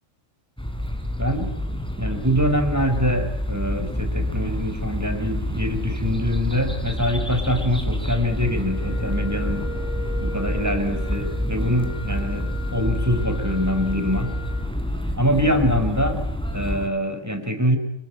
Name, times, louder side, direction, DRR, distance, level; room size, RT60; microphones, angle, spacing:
sound 1, 0.6-16.9, left 1 dB, 5° left, 4.0 m, -28 dB
voice 1, 1.2-1.5 2.0-9.7 10.2-14.3 15.2-16.2 16.5-17.8, equal, 10° right, 7 dB, 4.4 m, -24 dB
Wind instrument woodwind instrument, 8.3-14.7, left 1 dB, 90° left, 5.5 m, -39 dB
28.0 x 22.5 x 9.0 m, 0.78 s
omnidirectional pair, 1.4 m